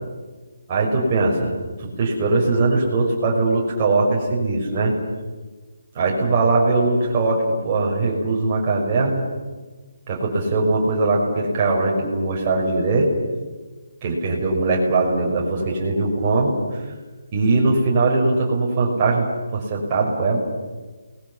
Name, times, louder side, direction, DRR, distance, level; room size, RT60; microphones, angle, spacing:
voice 1, 0.7-1.5 1.8-4.9 5.9-9.2 10.1-13.1 14.0-16.8 17.3-19.3 19.5-20.4, right 3 dB, 20° right, -3 dB, 5.6 m, -20 dB
30.0 x 21.5 x 7.1 m, 1.3 s
hypercardioid pair, 175°, 0 cm